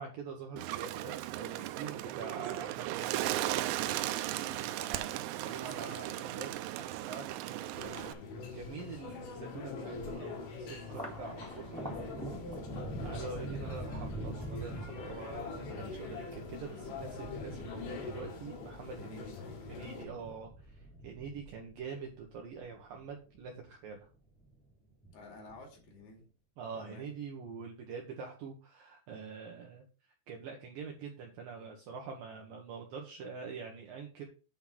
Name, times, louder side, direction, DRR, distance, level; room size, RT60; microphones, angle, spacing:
voice 1, 0.0-8.0 8.5-11.8 13.0-19.4 19.7-20.5 21.0-24.1 26.6-29.8 30.3-34.2, right 5 dB, 70° right, 2 dB, 2.2 m, -45 dB
Bird, 0.6-8.1, right 15 dB, 90° right, 3.0 m, -36 dB
voice 2, 4.9-6.3 11.7-12.5 12.9-14.0 18.9-19.5 20.0-20.4 25.1-26.3 26.7-27.1, left 3 dB, 60° left, 1 dB, 4.1 m, -52 dB
sound 1, 7.8-20.1, left 4 dB, 80° left, 4.6 m, -44 dB
Thunder, 10.8-23.5 23.9-24.7 25.0-25.9, right 1 dB, ahead, 1.8 m, -45 dB
8.8 x 3.8 x 6.0 m, 0.34 s
omnidirectional pair, 5.3 m